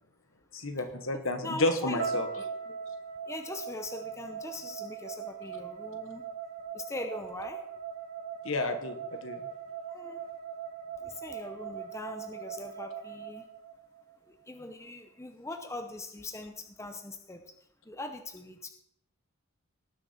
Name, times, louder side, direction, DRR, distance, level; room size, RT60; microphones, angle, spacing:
voice 1, 0.5-2.3 8.4-9.4, left 2 dB, 60° left, 7 dB, 1.3 m, -31 dB
voice 2, 1.4-2.4 3.3-6.2 6.7-7.6 9.9-10.2 11.0-13.4 14.3-17.4 17.9-18.7, left 2 dB, 15° left, 5 dB, 0.7 m, -41 dB
sound 1, 2.0-14.1, right 6 dB, 85° right, 2.6 m, -40 dB
18.5 x 6.4 x 4.3 m, 0.73 s
head